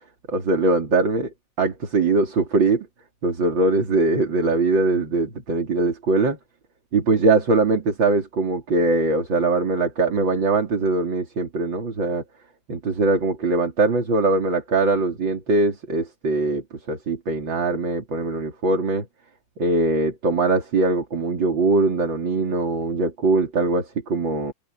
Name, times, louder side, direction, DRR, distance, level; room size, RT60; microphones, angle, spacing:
voice 1, 0.3-1.3 1.6-2.9 3.2-6.4 6.9-12.2 12.7-19.1 19.6-24.5, right 3 dB, 70° right, 4.0 m, -21 dB
omnidirectional pair, 2.1 m